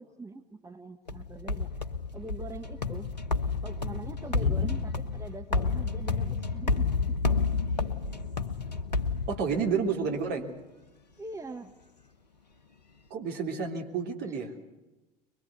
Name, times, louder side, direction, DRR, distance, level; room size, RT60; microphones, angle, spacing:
voice 1, 0.0-1.7 2.1-3.1 3.6-7.2 11.2-11.7 14.2-14.4, right 2 dB, 15° right, 7 dB, 1.5 m, -43 dB
sound 1, 1.1-9.9, left 4 dB, 85° left, 1.0 m, -30 dB
voice 2, 9.3-10.5 13.1-14.5, right 5 dB, 50° right, 3 dB, 3.4 m, -30 dB
23.0 x 22.5 x 8.2 m, 1.1 s
figure-of-eight pair, 65°, 21 cm